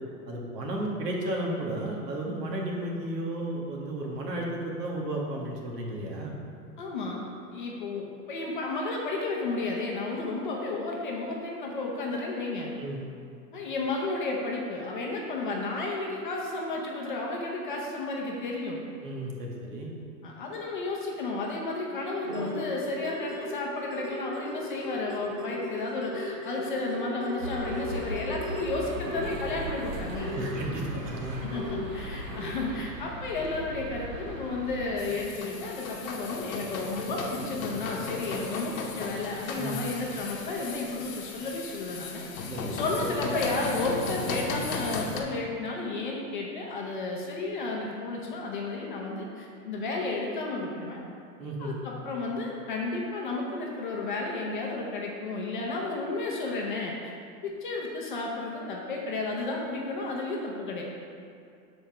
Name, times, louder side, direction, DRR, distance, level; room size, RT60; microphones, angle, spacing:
voice 1, 0.3-6.4 12.8-13.0 19.0-19.9 30.3-31.4 39.6-39.8 42.5-42.8 51.4-51.8, right 1 dB, 75° right, -1 dB, 1.8 m, -33 dB
voice 2, 6.8-7.2 7.5-12.7 13.5-18.8 20.2-30.3 31.5-42.2 42.7-51.0 51.6-57.1 57.4-60.8, left 3 dB, 30° left, -2 dB, 0.6 m, -32 dB
sound 1, 22.2-29.8 30.1-32.9 33.4-33.5, left 2 dB, 30° right, 1.2 m, -37 dB
sound 2, 27.4-34.9, right 1 dB, 50° right, 1.4 m, -38 dB
sound 3, 35.0-45.2, left 4 dB, 55° left, 1.1 m, -36 dB
7.0 x 4.4 x 5.7 m, 2.4 s
supercardioid pair, 175°, 49 cm